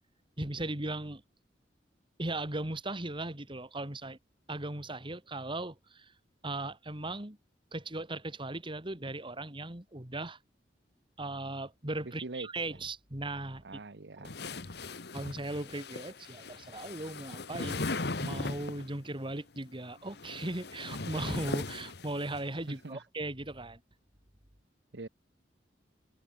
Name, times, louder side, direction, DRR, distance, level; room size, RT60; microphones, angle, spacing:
voice 1, 0.4-1.2 2.2-4.2 4.5-6.1 6.4-7.4 7.7-10.4 11.2-13.8 14.2-14.3 15.1-23.8, right 2 dB, 30° right, 2.7 m, -38 dB
voice 2, 12.0-12.5 13.6-14.3 22.7-23.0 24.9-25.1, right 2 dB, 75° right, 1.1 m, -42 dB
sound 1, 14.2-18.9 19.9-22.4, left 3 dB, 65° left, 1.4 m, -39 dB
head